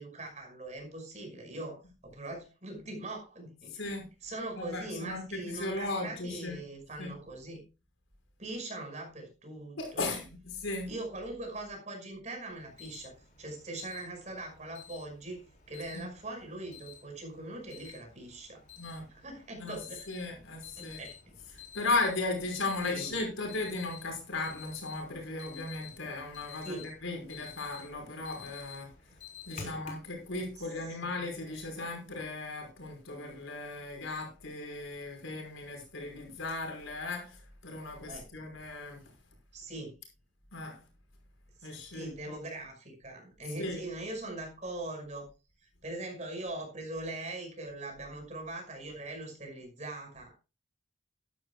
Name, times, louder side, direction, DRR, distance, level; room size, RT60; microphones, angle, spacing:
voice 1, 0.0-3.7 4.2-7.6 8.4-10.1 10.9-15.4 15.7-18.6 19.1-20.1 20.8-21.2 22.8-23.2 26.6-26.8 29.5-29.8 30.6-31.1 38.1-38.3 39.5-39.9 41.6-45.3 45.6-50.4, right 2 dB, 35° right, 2 dB, 5.6 m, -41 dB
voice 2, 3.7-4.1 4.6-6.6 7.0-7.1 9.8-10.9 15.9-16.0 18.8-19.0 19.6-19.8 20.1-21.0 21.7-28.9 29.5-37.4 37.6-39.0 40.5-40.8 41.6-42.4 43.6-43.8, left 2 dB, 90° left, 2 dB, 5.5 m, -36 dB
Alarm, 12.5-30.1, left 7 dB, 40° left, 4.0 m, -51 dB
14.5 x 12.0 x 2.3 m, 0.29 s
head